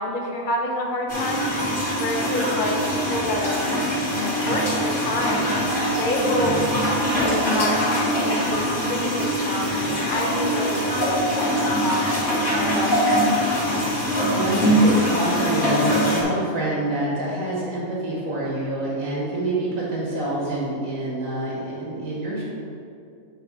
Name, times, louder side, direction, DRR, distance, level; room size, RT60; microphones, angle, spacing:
voice 1, 0.0-1.5 1.9-3.6 4.1-5.5 6.0-6.6 7.1-11.5 11.8-12.1 12.5-13.5, left 1 dB, 40° left, -1 dB, 1.0 m, -27 dB
sound 1, 1.1-16.2, equal, 60° left, 2.3 m, -23 dB
voice 2, 14.3-22.4, right 1 dB, 85° right, -5 dB, 1.8 m, -26 dB
8.7 x 3.2 x 6.0 m, 2.5 s
omnidirectional pair, 1.4 m